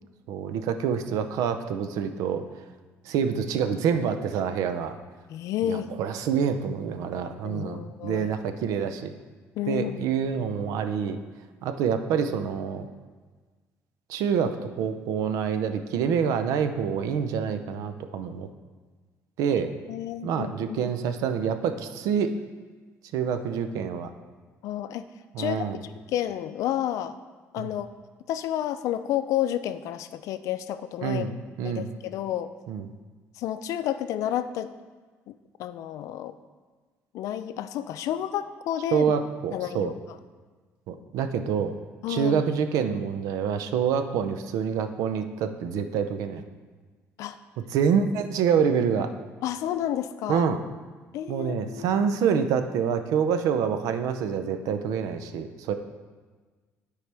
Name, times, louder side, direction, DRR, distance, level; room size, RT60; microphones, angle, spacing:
voice 1, 0.3-2.4 3.1-5.0 5.6-9.1 9.7-11.2 11.6-12.9 14.1-18.5 19.4-19.7 20.2-22.3 23.1-24.1 25.3-25.8 27.6-27.7 31.0-31.3 31.6-32.0 32.7-32.9 38.9-39.9 40.9-41.8 42.1-46.4 47.7-49.1 50.3-50.6 51.3-55.7, right 7 dB, 85° right, 8 dB, 0.6 m, -26 dB
voice 2, 5.3-6.0 7.4-8.3 9.6-10.2 19.9-20.9 24.6-25.1 25.4-25.7 26.1-27.2 27.5-27.9 28.3-31.3 31.6-32.5 33.3-34.7 35.3-35.4 35.6-36.3 37.1-39.1 39.5-39.9 42.0-42.4 47.2-47.4 49.4-50.5 51.1-52.0, left 11 dB, 75° left, 11 dB, 0.4 m, -30 dB
12.0 x 4.8 x 3.4 m, 1.4 s
cardioid pair, 120°, 6 cm